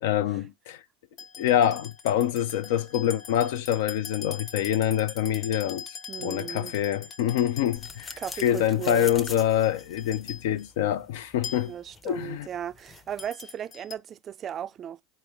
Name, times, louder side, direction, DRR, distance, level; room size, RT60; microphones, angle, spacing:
voice 1, 0.0-0.8 1.4-11.7 12.0-12.5, left 11 dB, 70° left, 0.5 m, -26 dB
sound 1, 1.2-10.7 11.4-11.9 13.2-13.9, left 6 dB, 40° left, 1.1 m, -42 dB
voice 2, 6.1-6.7 8.2-9.1 11.7-15.0, right 9 dB, 35° right, 0.4 m, -36 dB
sound 2, 7.8-13.3, left 3 dB, 20° left, 0.7 m, -45 dB
4.3 x 3.2 x 3.5 m
hypercardioid pair, 105°, 0 cm